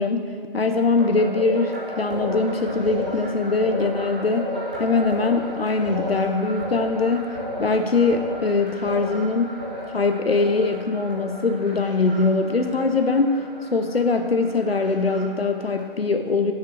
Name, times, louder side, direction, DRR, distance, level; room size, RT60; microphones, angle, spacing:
voice 1, 0.0-4.5 4.8-9.6 9.9-13.3 13.7-16.5, left 3 dB, 85° left, 6 dB, 0.7 m, -22 dB
sound 1, 1.0-15.8, equal, 10° right, 0.5 m, -33 dB
8.2 x 6.5 x 6.1 m, 2.1 s
figure-of-eight pair, 150°, 29 cm